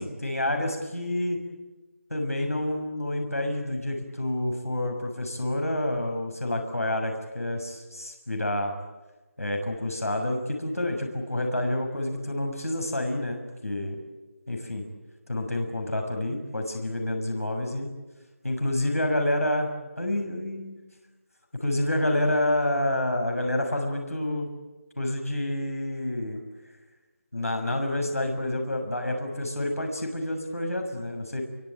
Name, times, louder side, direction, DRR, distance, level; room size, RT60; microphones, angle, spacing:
voice 1, 0.0-1.4 2.1-8.8 9.4-14.0 14.5-14.8 15.3-17.9 18.4-19.7 20.0-20.8 21.6-24.5 25.0-26.4 27.3-31.4, left 1 dB, 80° left, 3 dB, 6.7 m, -28 dB
26.0 x 23.5 x 9.0 m, 1.2 s
figure-of-eight pair, 160°, 8 cm